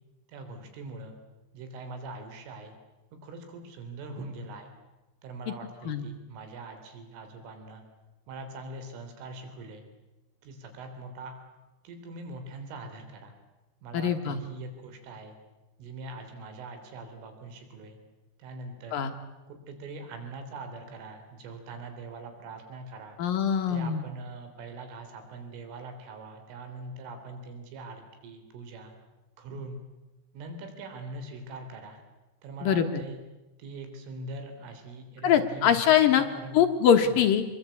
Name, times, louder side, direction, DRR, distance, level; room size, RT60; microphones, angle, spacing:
voice 1, 0.3-1.2 1.5-2.8 3.2-4.7 5.2-7.8 8.3-9.9 10.4-11.4 11.8-13.3 13.8-15.4 15.8-18.0 18.4-19.0 19.5-23.2 23.7-29.0 29.4-29.8 30.3-32.0 32.4-33.2 33.6-36.6 37.0-37.2, right 2 dB, 70° right, 7 dB, 5.9 m, -42 dB
voice 2, 13.9-14.4 18.9-19.1 23.2-24.0 32.6-32.9 35.2-36.2 36.5-37.4, left 8 dB, 70° left, 6 dB, 2.2 m, -22 dB
28.0 x 22.0 x 8.5 m, 1.1 s
omnidirectional pair, 5.9 m